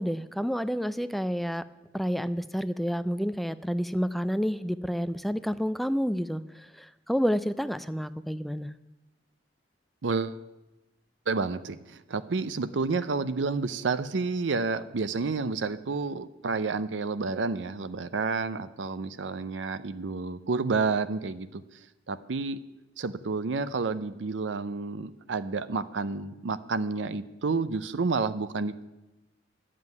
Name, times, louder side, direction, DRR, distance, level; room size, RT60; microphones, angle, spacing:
voice 1, 0.0-1.6 1.9-8.7, equal, ahead, 13 dB, 0.4 m, -29 dB
voice 2, 10.0-10.4 11.3-21.6 22.1-22.6 23.0-28.8, right 4 dB, 85° right, 13 dB, 0.6 m, -30 dB
11.0 x 7.6 x 9.4 m, 1.0 s
head